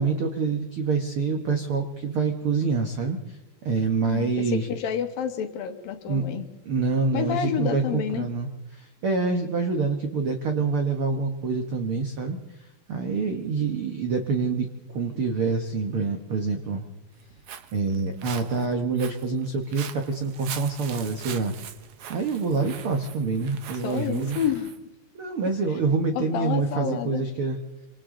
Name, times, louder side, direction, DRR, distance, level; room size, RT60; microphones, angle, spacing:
voice 1, 0.0-4.7 6.1-6.2 6.6-12.4 12.9-16.8 17.7-21.5 22.1-24.4 25.1-27.6, right 4 dB, 70° right, 5 dB, 1.3 m, -26 dB
voice 2, 4.1-6.5 7.1-8.3 23.8-24.7 26.1-27.2, left 8 dB, 70° left, 7 dB, 3.0 m, -29 dB
Walk footsteps, 17.1-24.8, right 9 dB, 90° right, 1.3 m, -42 dB
26.5 x 26.5 x 3.8 m, 1.0 s
omnidirectional pair, 4.4 m